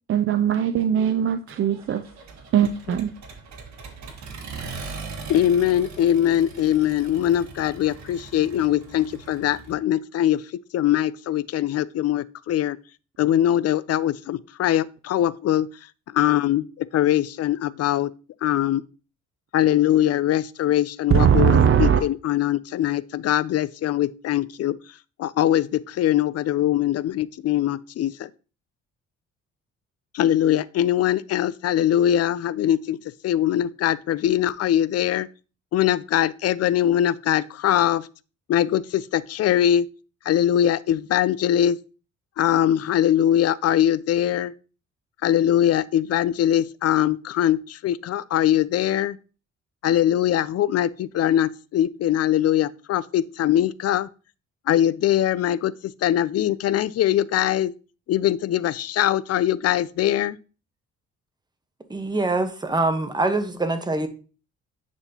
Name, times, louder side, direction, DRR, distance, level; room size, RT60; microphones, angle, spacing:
voice 1, 0.1-2.0 2.5-3.1 21.1-22.0, right 8 dB, 45° right, 0.5 m, -19 dB
Accelerating revving vroom, 1.5-9.7, right 4 dB, 65° right, 1.7 m, -40 dB
voice 2, 5.3-10.4 10.7-12.8 13.2-15.7 16.1-18.1 18.4-18.8 19.5-24.8 25.2-28.3 30.1-33.0 33.2-35.3 35.7-38.1 38.5-39.9 40.3-41.8 42.4-44.5 45.2-49.2 49.8-54.1 54.7-57.7 58.1-60.4, left 11 dB, 55° left, 0.4 m, -22 dB
voice 3, 61.9-64.1, right 2 dB, 15° right, 1.1 m, -24 dB
9.8 x 4.2 x 2.9 m
cardioid pair, 90°, 30 cm